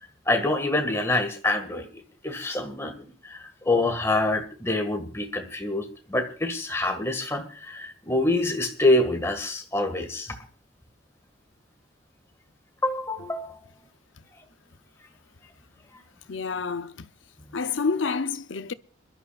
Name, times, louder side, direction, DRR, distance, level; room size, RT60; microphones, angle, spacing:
voice 1, 0.3-1.9 2.2-10.4 12.8-13.6, left 2 dB, 15° left, 1.8 m, -26 dB
voice 2, 16.3-17.1 17.5-18.7, left 4 dB, 85° left, 0.6 m, -28 dB
28.0 x 12.0 x 2.4 m
head